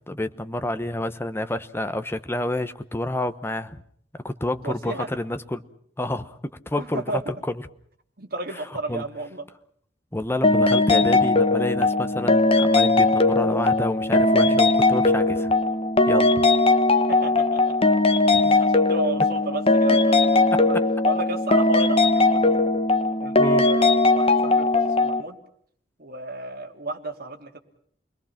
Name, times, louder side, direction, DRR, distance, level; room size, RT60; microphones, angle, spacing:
voice 1, 0.1-3.8 4.2-5.6 6.0-6.3 6.7-7.3 8.9-9.0 10.1-15.5 16.1-16.5 18.3-18.6 20.5-20.6 23.4-23.7, left 1 dB, 15° left, 10 dB, 1.0 m, -29 dB
voice 2, 4.6-5.1 6.8-7.2 8.2-9.4 17.1-17.6 18.2-20.8 21.0-22.4 23.2-25.4 26.0-27.6, right 2 dB, 55° right, 4 dB, 2.8 m, -33 dB
sound 1, 10.4-25.2, left 2 dB, 30° left, 1.3 m, -19 dB
29.5 x 21.5 x 5.9 m, 0.63 s
head